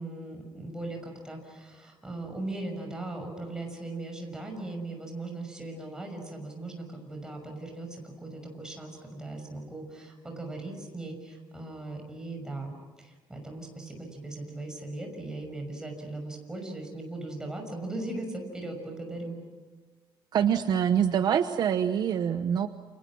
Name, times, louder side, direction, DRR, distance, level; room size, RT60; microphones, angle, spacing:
voice 1, 0.0-19.4, right 2 dB, 10° right, 3 dB, 6.2 m, -38 dB
voice 2, 20.3-22.7, right 8 dB, 50° right, 9 dB, 1.0 m, -25 dB
29.5 x 28.5 x 6.2 m, 1.4 s
cardioid pair, 165°, 9 cm